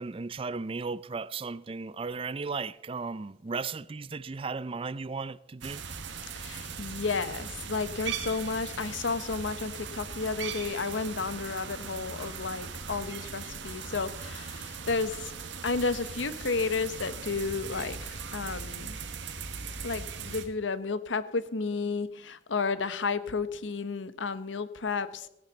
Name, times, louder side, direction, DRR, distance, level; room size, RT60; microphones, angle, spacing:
voice 1, 0.0-5.9, right 4 dB, 30° right, 0.4 m, -35 dB
sound 1, 5.6-20.5, right 5 dB, 80° right, 1.4 m, -39 dB
voice 2, 6.4-15.3 15.6-19.0 19.8-25.3, left 4 dB, 85° left, 0.9 m, -32 dB
17.5 x 11.5 x 3.9 m
head